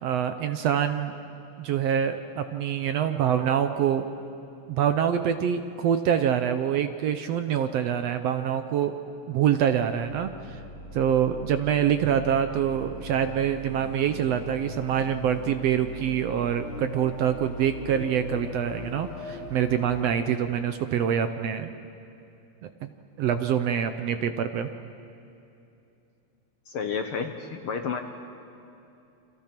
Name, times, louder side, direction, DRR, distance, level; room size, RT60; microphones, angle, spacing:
voice 1, 0.0-1.1 1.6-4.1 4.7-8.9 9.3-10.6 10.9-21.7 22.6-22.9 23.2-24.7, right 9 dB, 70° right, 8 dB, 1.7 m, -25 dB
sound 1, 9.9-20.1, left 2 dB, 45° left, 3.3 m, -40 dB
voice 2, 26.7-28.0, left 6 dB, 65° left, 6 dB, 1.5 m, -31 dB
29.5 x 26.0 x 6.0 m, 2.7 s
omnidirectional pair, 3.5 m